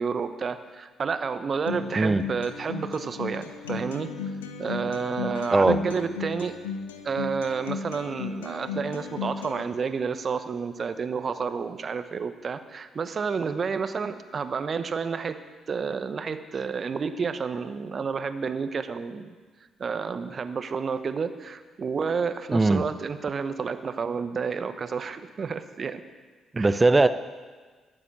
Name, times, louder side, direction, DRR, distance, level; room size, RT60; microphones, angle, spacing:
voice 1, 0.0-4.1 4.6-6.6 7.0-15.4 15.7-19.3 19.8-26.0 26.6-26.8, right 5 dB, 45° right, 11 dB, 1.0 m, -30 dB
Acoustic guitar, 1.7-9.6, left 5 dB, 80° left, 0.9 m, -35 dB
voice 2, 22.5-22.8 26.5-27.1, right 2 dB, 20° right, 12 dB, 0.6 m, -19 dB
12.5 x 8.8 x 8.6 m, 1.4 s
figure-of-eight pair, 45°, 0 cm